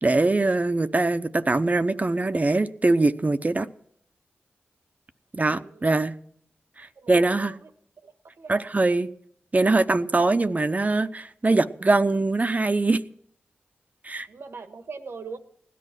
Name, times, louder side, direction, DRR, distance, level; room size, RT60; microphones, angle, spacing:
voice 1, 0.0-3.7 5.3-6.2 6.8-7.5 8.5-9.1 9.5-13.0 14.0-14.3, right 2 dB, 40° right, 10 dB, 0.9 m, -22 dB
voice 2, 5.4-5.9 7.0-7.7 8.0-8.6 14.3-15.4, right 4 dB, 80° right, 8 dB, 1.5 m, -41 dB
16.5 x 11.0 x 6.1 m, 0.65 s
cardioid pair, 40°, 4 cm